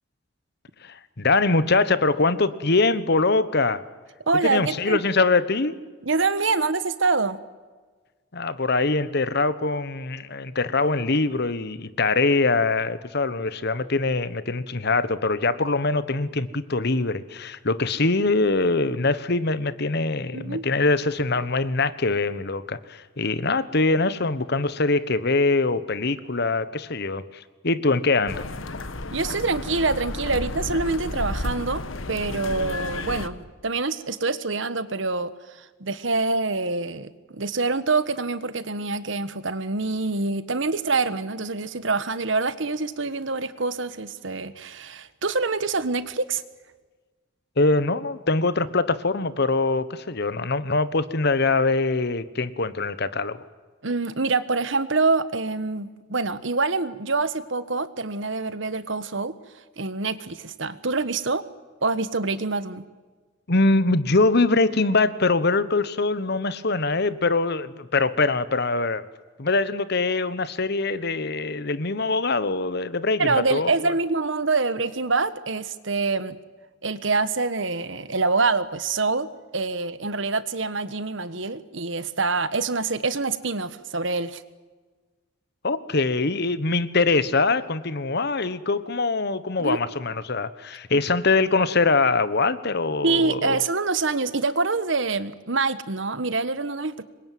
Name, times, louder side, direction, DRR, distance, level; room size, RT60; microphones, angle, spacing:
voice 1, 0.8-3.8 4.4-5.8 8.3-28.4 47.6-53.4 63.5-69.0 69.4-73.9 85.6-93.6, left 3 dB, 55° left, 15 dB, 1.3 m, -23 dB
voice 2, 4.3-5.0 6.0-7.4 20.3-20.6 29.1-31.8 32.1-35.3 35.6-46.4 53.8-59.3 59.8-61.4 61.8-62.8 73.2-76.4 76.8-79.3 79.5-84.4 89.6-89.8 93.0-97.0, right 3 dB, 65° right, 14 dB, 1.4 m, -25 dB
sound 1, 28.3-33.3, left 2 dB, 85° left, 1.4 m, -32 dB
26.5 x 22.5 x 9.3 m, 1.4 s
head